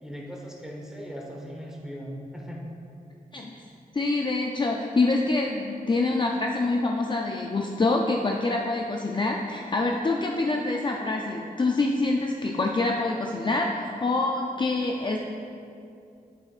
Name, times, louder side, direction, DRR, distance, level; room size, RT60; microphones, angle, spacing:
voice 1, 0.0-2.6, equal, 5° right, -2 dB, 1.2 m, -38 dB
voice 2, 3.3-3.6 3.9-15.2, left 3 dB, 30° left, 1 dB, 0.4 m, -26 dB
9.0 x 7.5 x 2.4 m, 2.5 s
wide cardioid pair, 110°, 15 cm